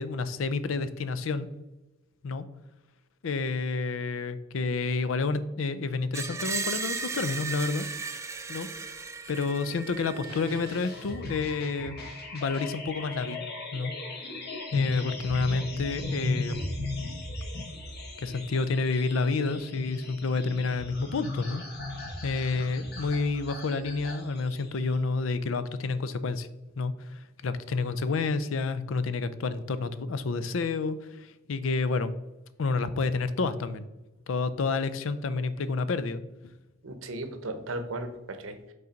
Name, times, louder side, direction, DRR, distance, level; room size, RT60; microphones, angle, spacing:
voice 1, 0.0-1.5 2.2-2.4 3.2-7.9 8.5-8.7 9.3-12.0 12.3-13.9 14.7-16.6 18.2-21.6 22.2-26.5 26.8-32.1 32.6-33.9 34.3-36.2, left 4 dB, 80° left, 13 dB, 0.5 m, -29 dB
Screech, 6.1-11.1, right 4 dB, 15° right, 0.3 m, -36 dB
sound 1, 10.2-25.0, left 2 dB, 55° left, 1.3 m, -37 dB
voice 2, 36.8-38.7, right 2 dB, 85° right, 8 dB, 0.8 m, -36 dB
5.5 x 3.9 x 5.1 m, 1.0 s
head